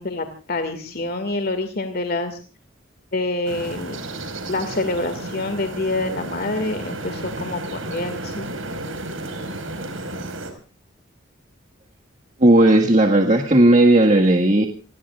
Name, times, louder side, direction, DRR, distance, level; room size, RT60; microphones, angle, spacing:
voice 1, 0.0-2.4 3.1-4.0 4.5-9.2, left 2 dB, 50° left, 7 dB, 2.1 m, -27 dB
sound 1, 3.5-10.5, right 2 dB, 85° right, 4.9 m, -32 dB
voice 2, 12.4-14.7, right 1 dB, 40° right, 2 dB, 1.7 m, -14 dB
29.0 x 20.5 x 2.4 m, 0.36 s
head